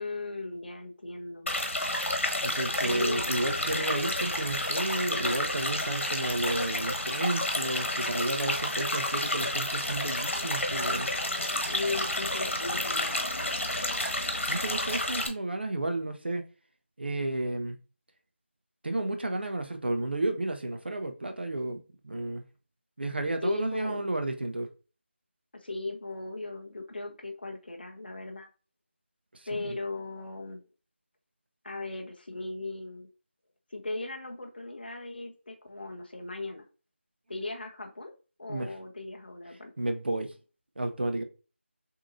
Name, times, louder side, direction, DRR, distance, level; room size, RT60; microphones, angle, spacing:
voice 1, 0.0-1.5 2.7-3.2 11.7-13.2 23.4-24.0 25.6-28.5 29.5-30.6 31.6-33.1 33.7-36.6 37.3-38.1 38.4-39.7, left 2 dB, 50° left, 0.8 m, -37 dB
sound 1, 1.5-15.3, left 1 dB, 85° left, 1.3 m, -30 dB
voice 2, 2.4-11.1 14.5-16.4 17.0-17.8 18.8-22.4 23.0-24.7 29.3-29.7 38.5-38.7 39.8-40.3 40.8-41.2, right 2 dB, 55° right, 0.8 m, -32 dB
6.4 x 2.8 x 2.6 m
figure-of-eight pair, 175°, 7 cm